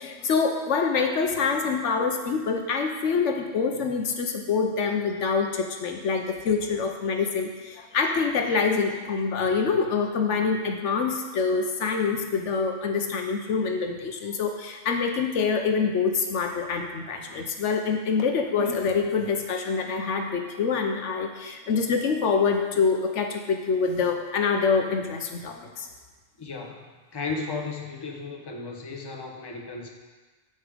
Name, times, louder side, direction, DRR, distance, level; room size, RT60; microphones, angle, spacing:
voice 1, 0.0-25.9, left 5 dB, 70° left, 4 dB, 1.1 m, -26 dB
voice 2, 26.4-26.8 27.1-29.9, left 4 dB, 20° left, 0 dB, 0.9 m, -34 dB
8.2 x 7.1 x 5.0 m, 1.3 s
omnidirectional pair, 1.3 m